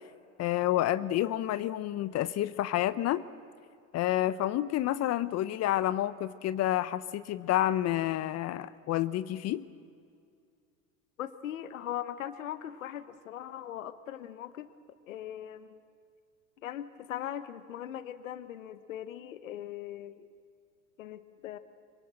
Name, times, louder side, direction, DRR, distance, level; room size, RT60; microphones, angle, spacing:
voice 1, 0.4-3.2 3.9-9.7, left 13 dB, 40° left, 15 dB, 0.7 m, -29 dB
voice 2, 11.2-14.7 15.1-15.8 16.6-20.3 21.0-21.6, left 11 dB, 90° left, 13 dB, 1.1 m, -40 dB
26.0 x 23.0 x 7.7 m, 2.3 s
hypercardioid pair, 100°, 39 cm